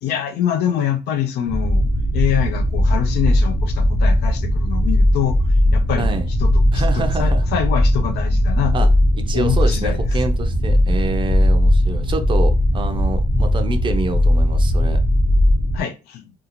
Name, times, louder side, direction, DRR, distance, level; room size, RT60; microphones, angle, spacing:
voice 1, 0.0-1.8 2.1-5.4 5.7-6.1 6.4-8.9 9.3-10.2 15.7-16.3, left 10 dB, 75° left, 0.5 m, -25 dB
sound 1, 1.5-15.8, left 1 dB, 50° left, 0.9 m, -18 dB
voice 2, 6.7-7.4 8.7-8.9 9.3-15.0, right 3 dB, 30° right, 0.4 m, -26 dB
2.5 x 2.4 x 2.8 m
cardioid pair, 110°, 17 cm